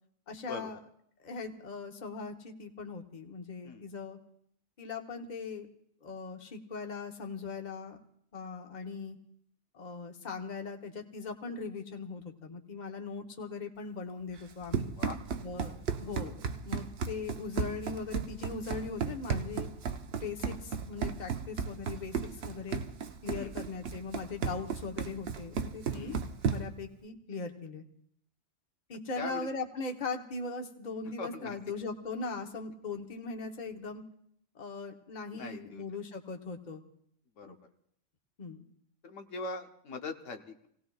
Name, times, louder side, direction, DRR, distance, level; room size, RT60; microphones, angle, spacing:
voice 1, 0.3-0.8 1.2-4.2 4.8-5.7 6.0-8.0 8.3-9.2 9.7-14.9 15.4-19.7 20.1-22.8 23.2-26.2 26.4-27.8 28.9-34.0 34.5-36.8 37.4-37.6 38.4-38.6, left 4 dB, 40° left, 4 dB, 1.1 m, -40 dB
Run, 14.4-26.8, right 6 dB, 60° right, 0.9 m, -35 dB
voice 2, 23.3-23.7 25.9-26.2 29.2-29.5 31.2-31.6 35.3-35.8 37.4-37.5 39.0-40.7, left 3 dB, 90° left, 5 dB, 1.3 m, -41 dB
28.5 x 17.5 x 2.4 m, 0.68 s
omnidirectional pair, 1.2 m